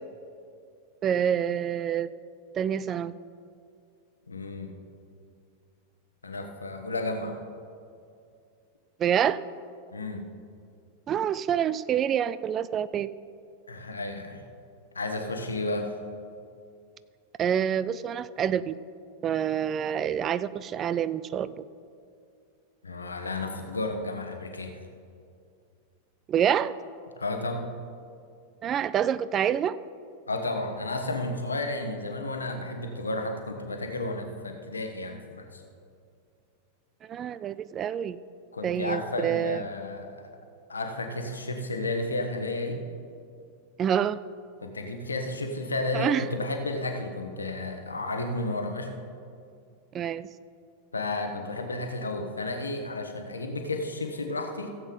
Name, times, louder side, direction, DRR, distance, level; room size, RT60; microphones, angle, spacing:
voice 1, 1.0-2.1 2.5-3.1 9.0-9.4 11.1-13.1 17.4-18.8 19.2-21.6 26.3-26.7 28.6-29.8 37.0-38.2 38.6-39.6 43.8-44.2 45.9-46.2 49.9-50.3, right 9 dB, 30° right, 16 dB, 0.3 m, -27 dB
voice 2, 4.3-4.8 6.2-7.4 9.9-10.3 13.7-14.4 14.9-15.9 22.8-24.8 27.2-27.6 30.3-35.6 38.5-40.3 40.7-42.8 44.6-48.9 50.9-54.8, left 2 dB, 75° left, 4 dB, 1.1 m, -32 dB
16.5 x 7.9 x 3.9 m, 2.4 s
figure-of-eight pair, 90°, 0 cm